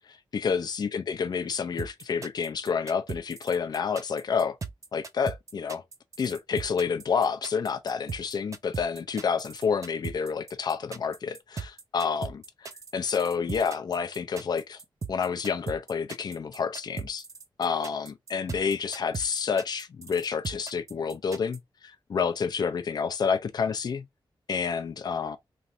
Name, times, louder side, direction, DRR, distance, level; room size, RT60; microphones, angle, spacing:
voice 1, 0.1-4.6 4.9-5.8 6.2-14.8 15.1-17.2 17.6-24.1 24.5-25.4, left 6 dB, 50° left, 0.5 m, -29 dB
sound 1, 1.8-21.6, right 5 dB, 35° right, 0.4 m, -38 dB
3.1 x 2.5 x 2.7 m
wide cardioid pair, 180°, 9 cm